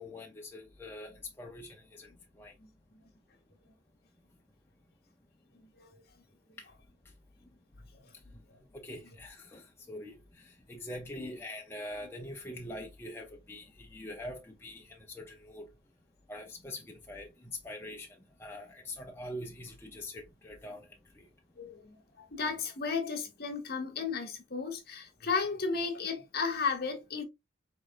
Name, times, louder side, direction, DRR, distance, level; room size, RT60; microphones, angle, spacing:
voice 1, 0.0-2.1 2.4-2.5 6.6-6.7 8.7-15.7 16.3-18.1 18.4-20.9 21.2-21.3, left 1 dB, 10° left, 0.5 m, -44 dB
voice 2, 2.6-3.0 5.6-6.0 6.5-6.6 7.9-8.1 8.5-8.6 9.0-9.1 11.2-11.4 21.6-27.2, left 5 dB, 50° left, 1.1 m, -35 dB
4.5 x 3.2 x 2.5 m
head